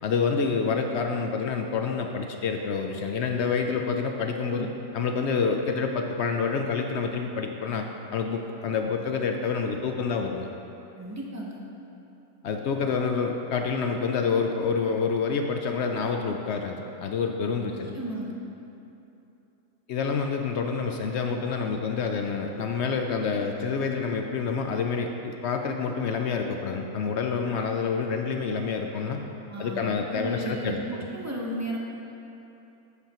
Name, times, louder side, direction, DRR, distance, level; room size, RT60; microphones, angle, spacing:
voice 1, 0.0-4.7 4.9-10.5 12.4-17.9 19.9-29.2 29.6-30.8, left 5 dB, 65° left, 4 dB, 0.7 m, -28 dB
voice 2, 11.0-11.6 17.7-18.3 29.5-31.8, right 1 dB, 15° right, -3 dB, 0.8 m, -34 dB
10.5 x 8.1 x 2.9 m, 2.9 s
omnidirectional pair, 1.6 m